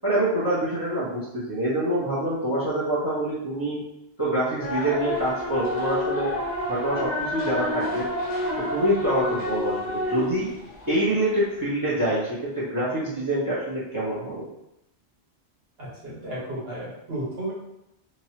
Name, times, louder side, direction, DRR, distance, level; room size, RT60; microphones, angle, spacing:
voice 1, 0.0-3.8 4.2-6.3 6.7-8.1 8.7-10.5 10.9-12.3 12.6-14.4, right 1 dB, 20° right, -8 dB, 0.7 m, -25 dB
sound 1, 4.6-11.2, left 1 dB, 50° left, 0.6 m, -29 dB
voice 2, 15.8-17.5, right 1 dB, 65° right, -6 dB, 1.3 m, -33 dB
2.9 x 2.2 x 2.8 m, 0.84 s
omnidirectional pair, 1.1 m